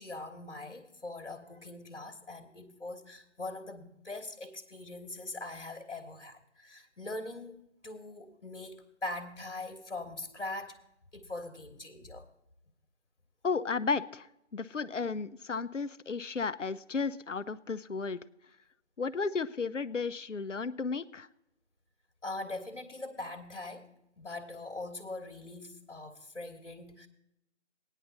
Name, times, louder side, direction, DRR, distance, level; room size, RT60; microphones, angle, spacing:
voice 1, 0.0-10.8 11.1-12.3 22.2-23.9 24.2-27.1, left 2 dB, 65° left, 4 dB, 1.4 m, -42 dB
voice 2, 13.4-14.3 14.5-18.2 19.0-21.3, left 4 dB, 85° left, 14 dB, 0.7 m, -33 dB
15.5 x 10.0 x 4.1 m, 0.83 s
figure-of-eight pair, 165°, 36 cm